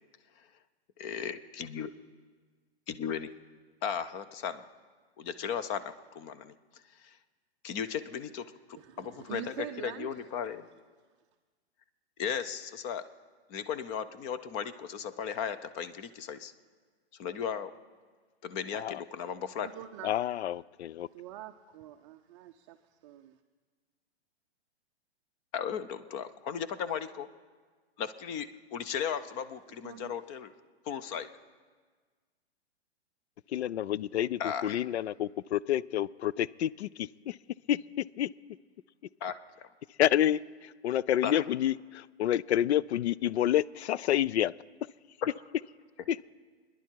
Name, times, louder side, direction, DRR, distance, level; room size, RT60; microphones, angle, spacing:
voice 1, 1.0-1.9 2.9-3.3 3.8-4.7 5.2-7.2 7.6-10.7 12.2-13.1 13.5-16.5 17.1-17.7 18.4-19.7 25.5-27.3 28.0-30.5 30.8-31.3 34.4-34.8 39.2-39.7 41.2-41.4 45.2-45.3, left 7 dB, 25° left, 13 dB, 0.5 m, -36 dB
voice 2, 8.7-10.1 19.6-20.1 21.1-23.4 29.8-30.2, right 12 dB, 30° right, 6 dB, 0.5 m, -44 dB
voice 3, 20.0-21.1 33.5-37.4 37.7-38.3 40.0-44.5 46.1-46.3, left 11 dB, 75° left, 21 dB, 0.5 m, -29 dB
26.0 x 10.5 x 4.6 m, 1.5 s
hypercardioid pair, 140°, 33 cm